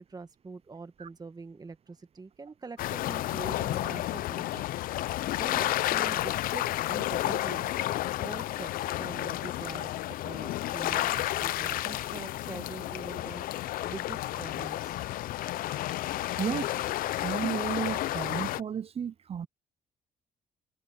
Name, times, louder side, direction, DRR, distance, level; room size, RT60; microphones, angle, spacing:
voice 1, 0.0-4.7 5.1-7.7 8.2-13.4 13.8-15.0, right 4 dB, 25° right, 1.7 m, -44 dB
sound 1, 2.8-18.6, left 15 dB, 75° left, 0.6 m, -31 dB
Organ, 5.9-12.5, left 7 dB, 50° left, 6.1 m, -51 dB
voice 2, 16.4-16.8 17.2-19.5, right 8 dB, 40° right, 0.7 m, -33 dB
supercardioid pair, 75°, 15 cm